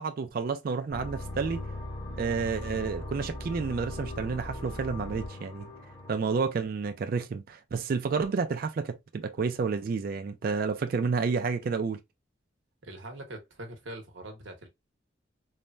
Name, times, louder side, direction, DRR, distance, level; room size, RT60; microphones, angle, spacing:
voice 1, 0.0-1.7 2.2-5.7 6.1-12.0, right 5 dB, 50° right, 0.3 m, -30 dB
sound 1, 0.9-6.2, left 1 dB, 20° left, 0.7 m, -38 dB
voice 2, 12.8-14.7, right 1 dB, 80° right, 0.9 m, -43 dB
3.2 x 2.1 x 2.4 m
head